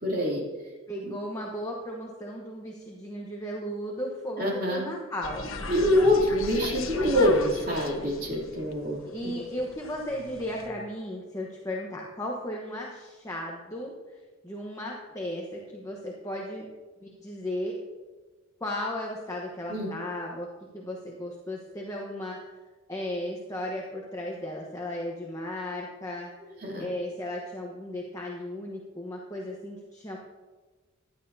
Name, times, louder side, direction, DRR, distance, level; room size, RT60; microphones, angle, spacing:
voice 1, 0.0-0.4 1.0-1.1 4.4-4.8 5.7-9.3 19.7-19.9 26.4-26.9, left 1 dB, 40° right, -3 dB, 2.9 m, -25 dB
voice 2, 0.9-5.5 9.0-13.9 14.4-16.7 17.0-17.7 18.6-20.5 20.7-22.4 22.9-26.3 26.8-30.2, left 1 dB, 15° left, -1 dB, 1.1 m, -35 dB
sound 1, 5.2-10.7, left 3 dB, 65° left, 1.2 m, -38 dB
16.5 x 11.0 x 2.7 m, 1.3 s
head